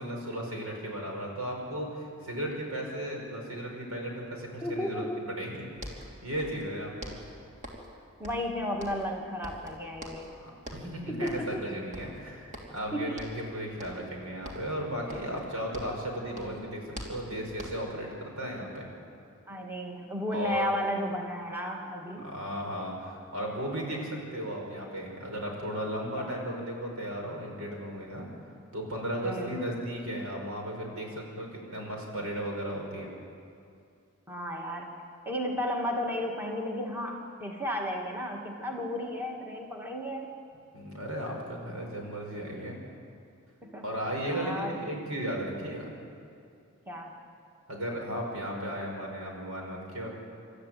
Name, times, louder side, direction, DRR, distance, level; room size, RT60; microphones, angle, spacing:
voice 1, 0.0-7.2 10.4-18.9 20.3-20.7 22.2-28.3 28.7-33.1 40.7-42.8 43.8-45.9 47.7-50.1, equal, 80° right, 0 dB, 5.4 m, -35 dB
voice 2, 4.6-5.2 8.2-10.3 11.1-11.6 12.9-13.2 15.1-15.2 19.5-22.3 26.2-26.3 29.2-29.6 34.3-34.9 35.2-40.3 43.6-43.9 44.3-44.8 46.9-47.2, left 1 dB, 10° right, 0 dB, 1.8 m, -33 dB
sound 1, 5.5-5.6 5.8-6.7 7.0-8.0 8.2-9.2 9.4-10.3 10.6-10.9 11.3-11.6 11.9-12.8 13.2-13.5 13.8-14.1 14.4-16.1 16.3-18.0, equal, 35° right, 3.3 m, -44 dB
27.5 x 13.0 x 9.2 m, 2.5 s
head